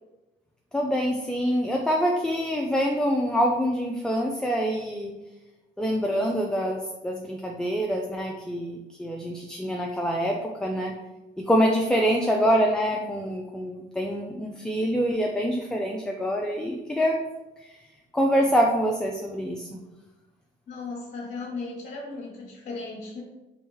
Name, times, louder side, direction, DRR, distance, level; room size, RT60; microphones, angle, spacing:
voice 1, 0.7-5.2 5.8-10.9 11.4-17.2 18.1-19.8, equal, 5° left, 1 dB, 0.3 m, -25 dB
voice 2, 20.7-23.2, left 3 dB, 50° left, -3 dB, 0.9 m, -36 dB
3.5 x 3.0 x 3.1 m, 1.1 s
cardioid pair, 90°, 20 cm